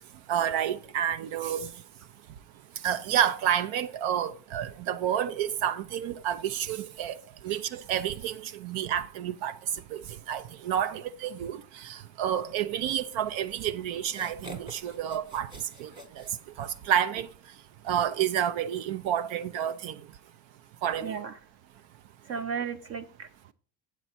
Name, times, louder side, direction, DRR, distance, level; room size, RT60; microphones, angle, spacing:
voice 1, 0.3-1.7 2.8-7.2 7.4-9.6 9.9-10.0 10.3-15.5 15.8-15.9 16.6-17.3 17.9-20.0 20.8-21.2, right 9 dB, 75° right, 0.6 m, -29 dB
sound 1, 14.1-16.9, right 1 dB, 10° right, 0.8 m, -47 dB
voice 2, 21.0-21.4 22.3-23.5, right 6 dB, 35° right, 0.4 m, -35 dB
9.1 x 7.2 x 4.2 m
cardioid pair, 155°, 46 cm